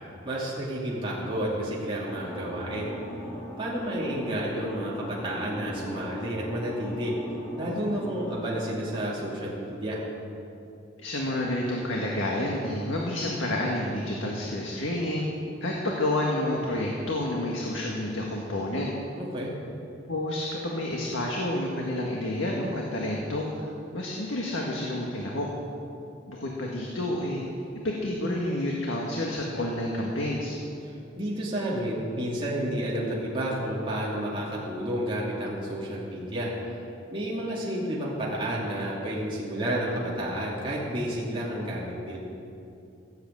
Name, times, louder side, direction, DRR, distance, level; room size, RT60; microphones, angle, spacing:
voice 1, 0.2-2.9 3.6-7.2 7.6-10.0 19.2-19.5 30.8-36.8 37.1-42.2, right 1 dB, 25° right, -6 dB, 2.4 m, -31 dB
sound 1, 2.1-8.7, left 1 dB, 15° left, 1.8 m, -39 dB
voice 2, 11.0-15.3 15.6-18.9 20.1-23.7 23.9-25.5 26.3-27.4 27.8-30.5, left 1 dB, 85° left, -2 dB, 1.7 m, -29 dB
16.5 x 8.1 x 7.9 m, 2.7 s
head